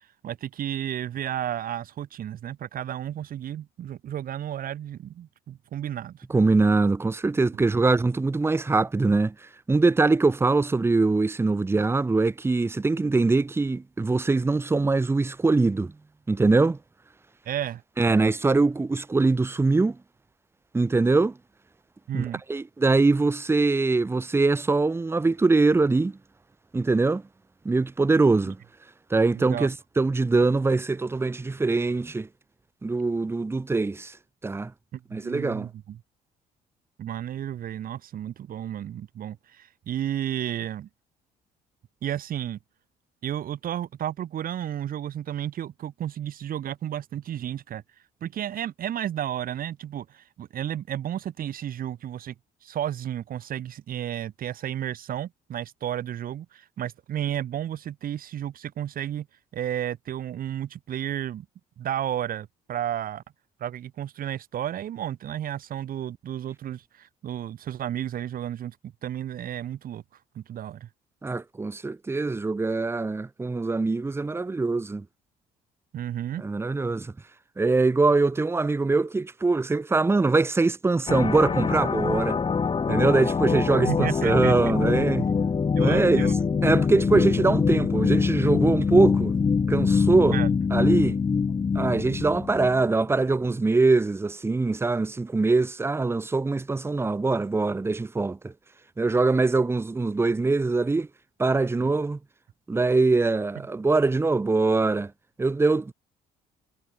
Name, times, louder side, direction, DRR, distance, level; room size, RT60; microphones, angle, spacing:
voice 1, 0.2-6.3 17.5-17.8 22.1-22.4 28.5-28.6 29.3-29.7 34.9-36.0 37.0-40.9 42.0-42.6 43.2-47.8 48.2-52.3 52.6-59.3 59.5-61.5 61.8-63.2 63.6-70.0 70.4-70.9 75.9-76.4 83.0-83.3 83.9-84.5 85.8-86.3 90.3-90.5, right 10 dB, 55° right, 7.1 m, -32 dB
voice 2, 6.3-15.9 16.3-16.8 18.0-20.0 20.7-21.4 22.1-26.2 26.7-27.2 27.6-28.6 29.1-32.3 32.8-34.2 34.4-34.7 35.1-35.7 71.2-75.0 76.4-77.1 77.6-82.4 82.9-85.3 85.8-86.3 86.6-89.4 89.7-90.4 90.7-91.2 91.7-98.5 99.0-101.1 101.4-102.2 102.7-105.1 105.4-105.9, right 3 dB, 15° right, 1.0 m, -23 dB
sound 1, 81.1-92.8, left 5 dB, 30° left, 3.2 m, -24 dB
cardioid pair, 110°, 17 cm